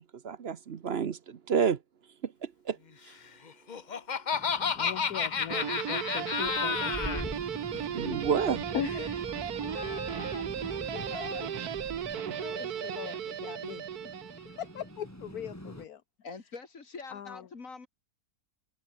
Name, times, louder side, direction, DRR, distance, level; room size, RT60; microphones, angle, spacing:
voice 1, 0.0-1.8 2.2-2.8 7.9-8.7, right 7 dB, 50° right, 0.9 m, -30 dB
Laughter, 3.5-7.2, left 6 dB, 40° left, 0.8 m, -31 dB
sound 1, 4.3-15.8, equal, 10° left, 7.3 m, -44 dB
voice 2, 4.7-8.0 8.7-11.6 12.0-14.1 14.4-16.0 17.1-17.5, left 9 dB, 75° left, 1.6 m, -41 dB
Guitar, 5.5-14.8, right 9 dB, 80° right, 1.6 m, -36 dB
voice 3, 16.2-17.9, left 4 dB, 60° left, 2.9 m, -44 dB
omnidirectional pair, 1.6 m